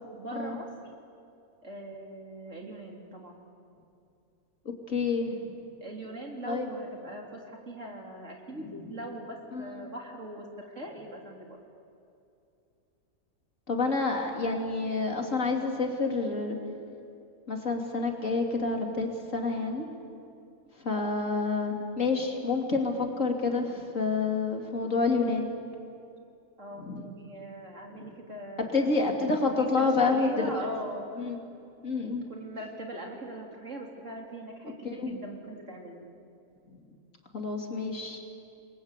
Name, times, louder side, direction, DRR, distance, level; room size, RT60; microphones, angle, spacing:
voice 1, 0.1-0.7 1.6-3.4 5.8-11.6 21.2-21.4 26.6-29.0 29.5-31.3 32.0-36.1, right 1 dB, 55° right, 1 dB, 3.8 m, -41 dB
voice 2, 4.9-5.5 6.5-6.7 9.5-9.7 13.7-16.6 17.5-19.9 20.8-25.5 26.8-27.0 28.7-30.3 31.2-31.4 31.8-32.2 34.9-35.2 37.3-38.2, left 4 dB, 60° left, 2 dB, 3.3 m, -28 dB
29.5 x 22.5 x 8.3 m, 2.6 s
omnidirectional pair, 1.5 m